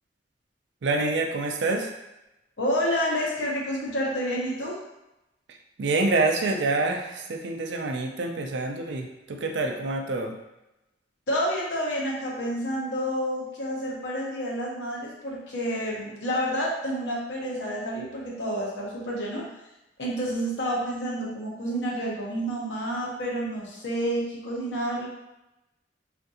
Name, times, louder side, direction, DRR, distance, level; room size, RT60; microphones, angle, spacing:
voice 1, 0.8-1.9 5.8-10.4, right 3 dB, 75° right, 3 dB, 0.4 m, -26 dB
voice 2, 2.6-4.8 11.3-19.4 20.0-25.1, equal, 75° left, -4 dB, 0.9 m, -29 dB
3.5 x 2.5 x 2.7 m, 0.94 s
head